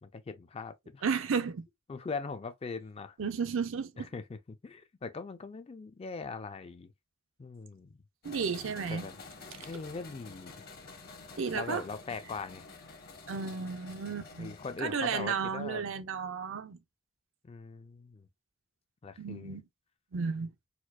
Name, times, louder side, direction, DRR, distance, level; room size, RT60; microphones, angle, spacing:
voice 1, 0.0-1.1 1.9-3.2 4.0-6.9 7.4-8.0 8.9-9.1 9.7-10.5 11.5-12.6 14.4-15.9 17.4-18.3 19.0-19.6, left 4 dB, 30° left, 0.4 m, -41 dB
voice 2, 1.0-1.6 3.2-4.1 8.2-9.0 11.4-11.8 13.3-14.5 14.8-16.8 19.2-19.6 20.1-20.5, right 5 dB, 70° right, 0.5 m, -33 dB
sound 1, 8.2-15.3, left 3 dB, 50° left, 0.8 m, -50 dB
4.4 x 2.3 x 2.3 m
head